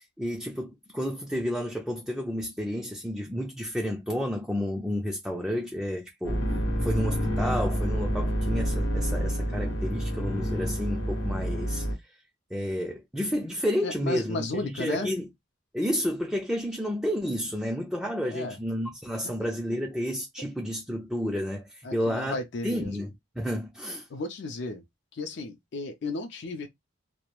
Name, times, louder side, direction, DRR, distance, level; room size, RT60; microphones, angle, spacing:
voice 1, 0.0-12.1 12.5-15.3 15.7-22.4 22.6-23.1 23.4-24.1, equal, 5° right, 0.3 m, -31 dB
sound 1, 6.2-12.0, equal, 80° left, 0.9 m, -28 dB
voice 2, 13.8-15.1 18.2-18.6 21.8-23.1 24.1-24.8 25.1-26.7, left 2 dB, 60° left, 0.4 m, -34 dB
2.2 x 2.1 x 2.9 m
head